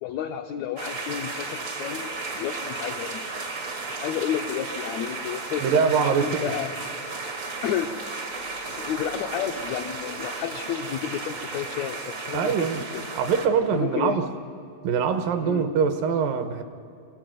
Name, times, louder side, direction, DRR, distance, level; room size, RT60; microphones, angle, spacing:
voice 1, 0.0-3.2 3.9-6.7 7.6-7.9 8.7-12.9 13.7-14.2 15.4-15.6, left 9 dB, 85° left, 5 dB, 1.5 m, -31 dB
sound 1, 0.8-13.5, right 3 dB, 60° right, 0.8 m, -34 dB
voice 2, 5.6-6.5 12.3-12.9 13.2-14.3 14.8-16.6, right 6 dB, 80° right, 8 dB, 2.7 m, -23 dB
23.0 x 15.5 x 9.1 m, 2.3 s
omnidirectional pair, 4.1 m